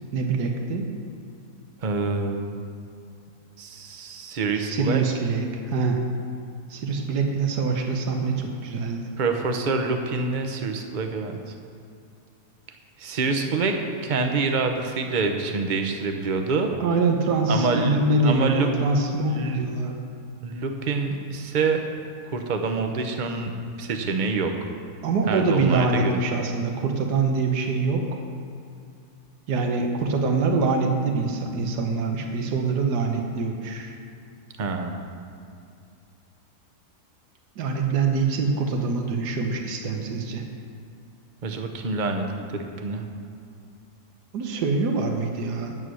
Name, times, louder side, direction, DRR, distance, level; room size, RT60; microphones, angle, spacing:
voice 1, 0.1-0.9 4.6-6.0 6.7-9.0 16.8-20.0 25.0-28.0 29.5-33.9 37.6-40.5 44.3-45.7, right 4 dB, 85° right, 3 dB, 1.6 m, -24 dB
voice 2, 1.8-2.6 3.6-5.0 9.2-11.5 13.0-16.7 17.5-18.7 19.3-19.6 20.4-21.9 22.3-23.5 23.8-24.5 25.3-26.2 34.6-35.0 41.4-43.0, right 4 dB, 40° right, 5 dB, 0.8 m, -26 dB
9.4 x 8.3 x 6.2 m, 2.5 s
omnidirectional pair, 1.7 m